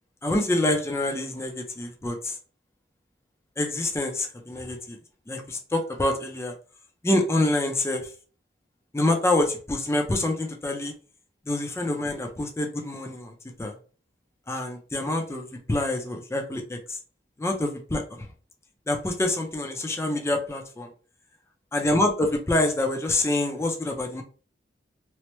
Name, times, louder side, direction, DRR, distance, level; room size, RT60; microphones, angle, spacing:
voice 1, 0.2-2.4 3.6-5.0 5.3-6.5 7.0-8.1 8.9-10.9 11.5-13.7 14.5-17.0 17.4-18.3 18.9-20.9 21.7-24.2, left 1 dB, 15° left, 3 dB, 0.5 m, -26 dB
3.0 x 2.0 x 3.0 m, 0.39 s
head